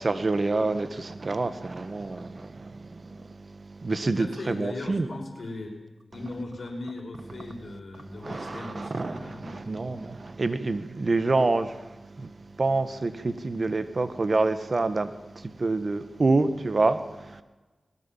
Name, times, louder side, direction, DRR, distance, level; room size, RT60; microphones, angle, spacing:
voice 1, 0.0-5.1 8.0-17.4, right 3 dB, 55° right, 1.7 m, -27 dB
voice 2, 4.0-5.8 6.1-10.0, left 2 dB, 70° left, 5.2 m, -39 dB
20.5 x 18.5 x 7.4 m
cardioid pair, 55°, 0 cm